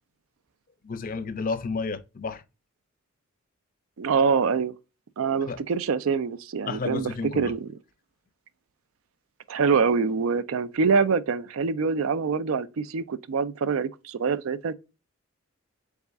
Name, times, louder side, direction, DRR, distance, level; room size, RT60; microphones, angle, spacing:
voice 1, 0.8-2.4 5.5-5.6 6.7-7.6, left 4 dB, 40° left, 0.5 m, -31 dB
voice 2, 4.0-4.7 5.2-7.1 7.4-7.7 9.5-14.7, right 5 dB, 80° right, 0.4 m, -25 dB
4.1 x 3.5 x 3.4 m
head